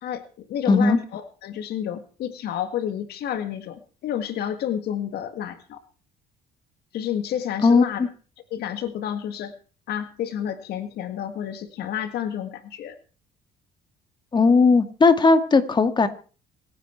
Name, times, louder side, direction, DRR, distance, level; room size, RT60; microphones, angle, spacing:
voice 1, 0.0-5.8 6.9-8.0 8.5-9.5 9.9-13.0, left 10 dB, 70° left, 1.9 m, -30 dB
voice 2, 0.7-1.0 7.6-8.1 14.3-16.1, left 4 dB, 25° left, 2.0 m, -17 dB
26.0 x 9.5 x 4.5 m
cardioid pair, 110°, 17 cm